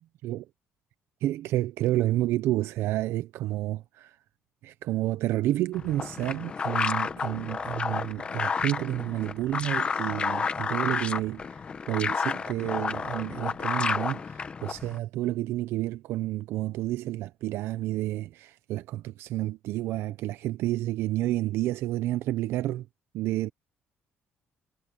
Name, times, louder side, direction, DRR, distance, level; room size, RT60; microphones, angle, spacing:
voice 1, 1.2-4.2 4.6-11.6 11.9-22.9 23.1-23.5, right 15 dB, 65° right, 0.5 m, -30 dB
sound 1, 5.7-15.0, left 5 dB, 25° left, 1.1 m, -31 dB
cardioid pair, 170°, 4 cm